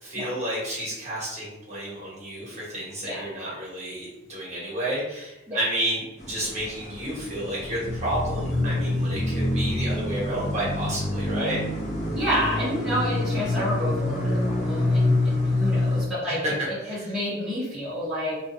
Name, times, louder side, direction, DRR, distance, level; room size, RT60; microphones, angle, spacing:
voice 1, 0.0-11.6 16.2-16.3 16.8-17.1, right 1 dB, 35° right, -7 dB, 1.1 m, -31 dB
sound 1, 6.2-16.0, left 2 dB, 35° left, 0.5 m, -26 dB
voice 2, 12.1-18.3, equal, 5° right, -13 dB, 0.8 m, -29 dB
2.3 x 2.3 x 2.6 m, 0.95 s
head